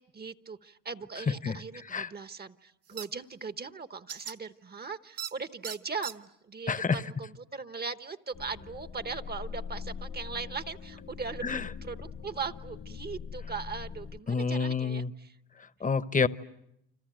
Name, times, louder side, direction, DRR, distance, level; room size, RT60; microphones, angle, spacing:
voice 1, 0.0-15.3, right 5 dB, 30° right, 1.0 m, -39 dB
voice 2, 1.3-2.1 6.7-7.0 11.4-11.7 14.3-15.1 15.6-16.3, left 5 dB, 25° left, 1.0 m, -29 dB
sound 1, 3.0-3.1 4.1-4.3 5.2-5.3 5.6-6.1, right 9 dB, 50° right, 1.4 m, -37 dB
sound 2, 8.3-14.2, left 6 dB, 50° left, 1.2 m, -42 dB
30.0 x 26.0 x 7.7 m
cardioid pair, 90°, 30 cm